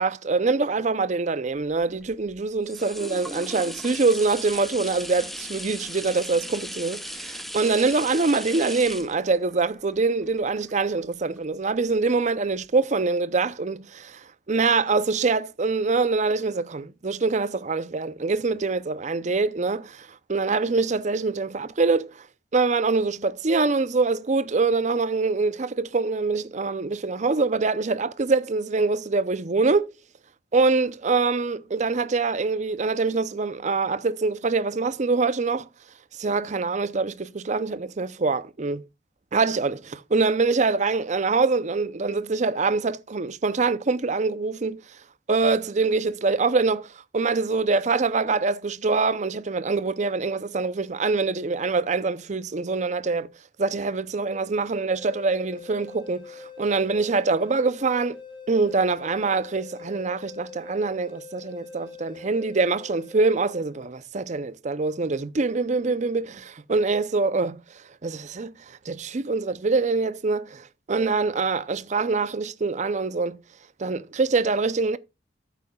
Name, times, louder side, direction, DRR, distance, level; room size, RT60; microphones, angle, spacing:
voice 1, 0.0-22.3 22.5-29.9 30.5-35.7 36.2-38.8 39.3-44.8 45.3-53.3 53.6-58.2 58.5-67.6 68.0-73.4 73.8-75.0, right 4 dB, 40° right, 0.6 m, -24 dB
sound 1, 1.6-11.4 11.9-12.0, equal, ahead, 0.8 m, -38 dB
sound 2, 55.0-63.9, left 5 dB, 30° left, 1.7 m, -43 dB
13.0 x 8.2 x 2.3 m
head